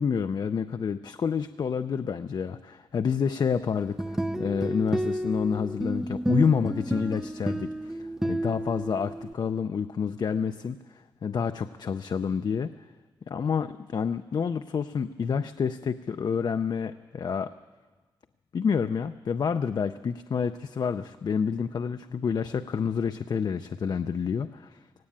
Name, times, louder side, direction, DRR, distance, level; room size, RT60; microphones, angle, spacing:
voice 1, 0.0-12.7 13.3-17.5 18.5-24.8, left 6 dB, 55° left, 10 dB, 0.5 m, -28 dB
sound 1, 3.8-9.3, right 1 dB, 5° right, 0.6 m, -30 dB
18.0 x 17.0 x 8.8 m, 1.3 s
wide cardioid pair, 165°, 9 cm